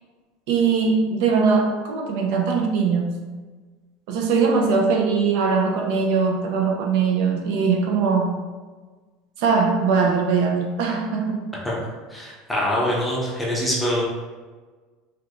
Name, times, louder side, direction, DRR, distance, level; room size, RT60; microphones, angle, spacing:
voice 1, 0.5-3.2 4.1-8.4 9.4-11.5, right 5 dB, 65° right, 3 dB, 0.4 m, -21 dB
voice 2, 12.1-14.1, equal, 5° left, -5 dB, 0.7 m, -24 dB
3.1 x 3.0 x 2.4 m, 1.4 s
supercardioid pair, 160°, 0 cm